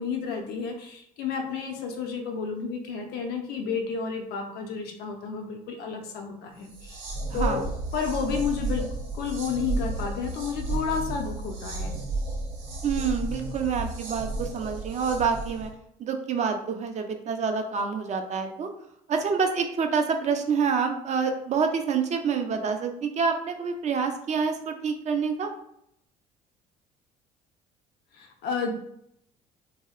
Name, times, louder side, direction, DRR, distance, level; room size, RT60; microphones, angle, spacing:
voice 1, 0.0-7.0 7.3-8.8 9.1-11.9 28.1-28.7, left 6 dB, 65° left, 3 dB, 0.5 m, -31 dB
sound 1, 6.6-15.7, right 2 dB, 80° right, 0.7 m, -32 dB
voice 2, 7.3-7.6 12.8-15.7 16.0-18.7 19.1-25.5, right 5 dB, 40° right, 5 dB, 0.4 m, -27 dB
2.6 x 2.0 x 2.3 m, 0.74 s
hypercardioid pair, 65°, 18 cm